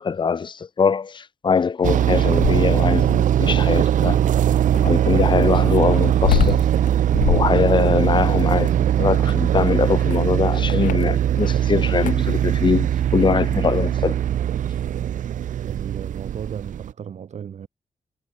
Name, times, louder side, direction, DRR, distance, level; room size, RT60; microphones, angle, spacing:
voice 1, 0.0-4.2 4.8-6.6 7.2-8.7 9.0-12.9 13.1-14.2, left 5 dB, 35° left, 1.1 m, -22 dB
sound 1, 1.8-16.9, right 10 dB, 75° right, 0.6 m, -20 dB
sound 2, 2.1-3.0 4.7-11.6 11.9-12.3 13.6-13.9, left 11 dB, 85° left, 0.5 m, -27 dB
voice 2, 15.6-17.7, right 8 dB, 60° right, 2.0 m, -35 dB
wide cardioid pair, 165°, 13 cm